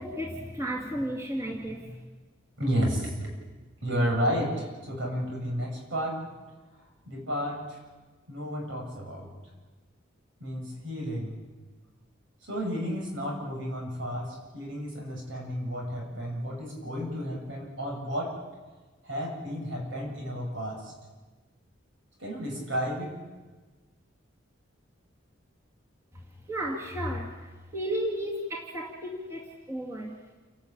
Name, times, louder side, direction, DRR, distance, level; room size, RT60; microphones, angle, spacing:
voice 1, 0.0-2.0 26.5-30.2, equal, 15° right, -2 dB, 2.4 m, -33 dB
voice 2, 2.6-3.1 3.8-6.2 7.1-7.8 8.3-9.3 10.4-11.4 12.4-18.4 19.0-20.9 22.2-23.1, equal, 70° right, 0 dB, 7.1 m, -32 dB
29.0 x 12.5 x 8.9 m, 1.3 s
head